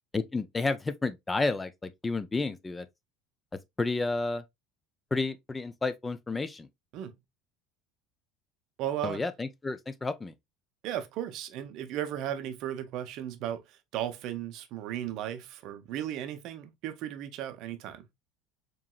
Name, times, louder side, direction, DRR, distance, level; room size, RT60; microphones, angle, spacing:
voice 1, 0.1-2.9 3.8-4.4 5.1-6.7 9.0-10.3, left 3 dB, 15° left, 0.5 m, -31 dB
voice 2, 8.8-9.2 10.8-18.1, right 11 dB, 50° right, 0.6 m, -35 dB
4.7 x 3.0 x 2.2 m
figure-of-eight pair, 70°, 0 cm